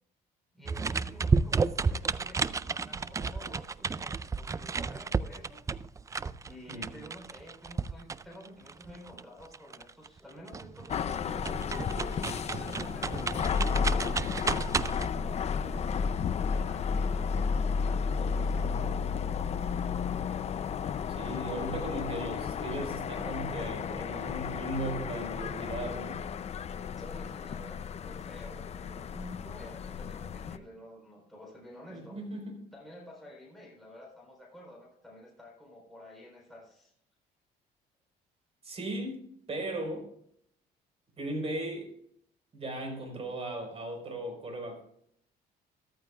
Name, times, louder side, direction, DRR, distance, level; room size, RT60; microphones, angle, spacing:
voice 1, 0.5-5.6 6.4-12.3 12.6-14.2 14.6-16.2 16.6-19.0 27.0-32.2 32.7-36.9, left 1 dB, ahead, 4.0 m, -50 dB
sound 1, 0.7-10.2 10.5-15.1, right 5 dB, 20° right, 0.3 m, -32 dB
sound 2, 10.9-30.6, left 6 dB, 40° left, 0.6 m, -33 dB
voice 2, 21.1-26.2 31.9-32.6 38.6-40.0 41.2-41.9 42.5-44.8, right 1 dB, 35° right, 4.7 m, -37 dB
14.0 x 14.0 x 2.4 m
cardioid pair, 110°, 17 cm